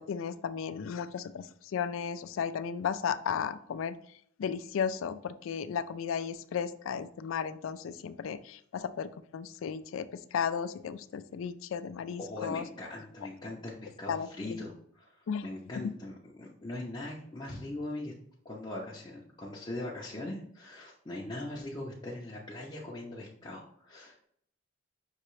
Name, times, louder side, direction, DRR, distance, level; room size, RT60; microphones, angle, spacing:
voice 1, 0.0-4.0 4.4-12.7 14.1-14.7 15.3-15.5 15.8-15.9, left 7 dB, 80° left, 13 dB, 0.3 m, -34 dB
voice 2, 12.2-15.2 15.4-18.1 18.4-24.3, left 2 dB, 25° left, -5 dB, 0.6 m, -41 dB
5.5 x 2.9 x 3.1 m, 0.65 s
head